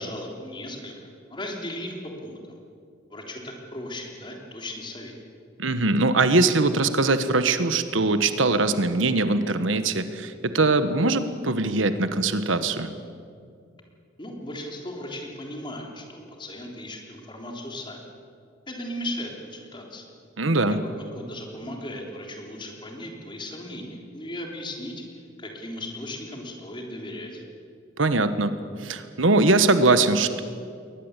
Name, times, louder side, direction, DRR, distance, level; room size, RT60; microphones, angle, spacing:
voice 1, 0.0-1.9 2.2-2.6 3.1-5.2 14.2-18.0 18.7-20.1 21.2-27.4, left 1 dB, 25° left, 1 dB, 3.6 m, -37 dB
voice 2, 5.6-12.9 20.4-20.8 28.0-30.4, right 3 dB, 80° right, 11 dB, 1.3 m, -22 dB
22.0 x 19.5 x 8.2 m, 2.3 s
head